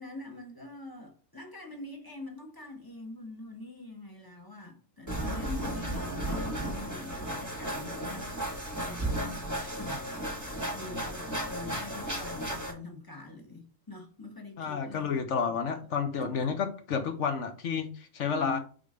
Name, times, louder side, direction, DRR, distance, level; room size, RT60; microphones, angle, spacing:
voice 1, 0.0-9.5 9.8-10.1 10.7-15.2 16.2-16.3 18.3-18.6, left 2 dB, 15° left, 1.3 m, -44 dB
sound 1, 5.1-12.7, right 1 dB, 15° right, 1.4 m, -34 dB
voice 2, 14.6-18.6, left 6 dB, 65° left, 1.3 m, -31 dB
5.0 x 3.9 x 4.9 m
omnidirectional pair, 1.3 m